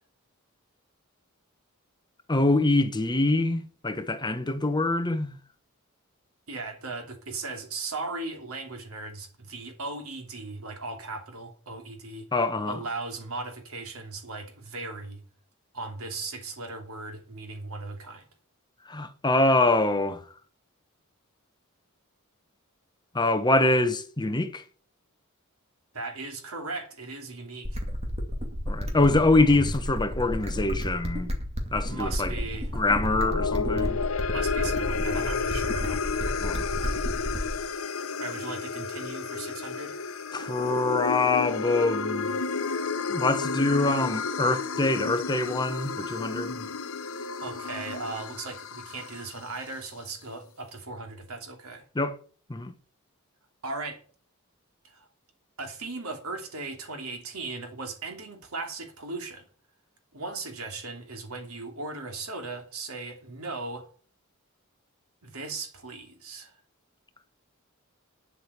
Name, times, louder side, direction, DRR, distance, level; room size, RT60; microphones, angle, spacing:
voice 1, 2.3-5.3 12.3-12.8 18.9-20.2 23.1-24.6 28.7-31.3 31.7-32.3 32.7-34.0 36.4-36.7 40.3-42.4 43.1-46.7 51.9-52.2 52.5-52.7, left 2 dB, 20° left, 1.0 m, -24 dB
voice 2, 6.5-12.3 12.7-15.2 15.7-18.3 25.9-27.8 31.9-32.7 34.3-36.0 38.2-40.0 47.4-51.8 53.6-54.0 54.8-55.1 55.6-59.5 60.1-63.9 65.2-66.5, right 3 dB, 90° right, 2.9 m, -37 dB
sound 1, 27.6-37.6, equal, 30° right, 2.5 m, -31 dB
sound 2, 33.0-49.4, left 5 dB, 70° left, 0.9 m, -31 dB
9.8 x 7.6 x 8.1 m
head